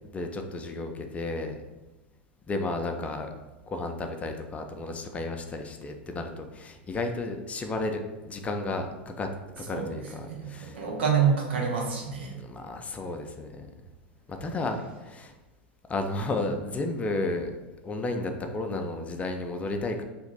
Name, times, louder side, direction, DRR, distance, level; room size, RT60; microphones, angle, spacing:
voice 1, 0.1-1.6 2.5-3.3 3.7-9.3 9.6-10.9 12.4-13.7 14.3-15.3 15.9-17.5 17.8-20.0, left 2 dB, 20° left, 5 dB, 0.4 m, -33 dB
voice 2, 10.2-12.3, right 6 dB, 75° right, -1 dB, 0.9 m, -27 dB
2.9 x 2.5 x 4.0 m, 1.1 s
hypercardioid pair, 85°, 6 cm